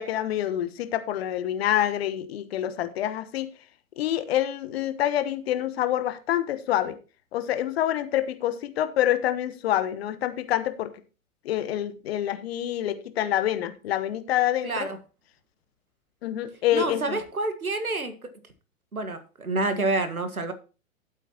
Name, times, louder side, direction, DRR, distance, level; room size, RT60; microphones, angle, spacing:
voice 1, 0.0-3.5 4.0-7.0 7.3-10.9 11.4-14.9 16.2-17.2, left 12 dB, 45° left, 12 dB, 1.2 m, -27 dB
voice 2, 14.6-15.0 16.7-18.1 18.9-20.5, right 2 dB, 85° right, 9 dB, 1.8 m, -28 dB
12.5 x 8.3 x 3.0 m, 0.33 s
figure-of-eight pair, 105°, 42 cm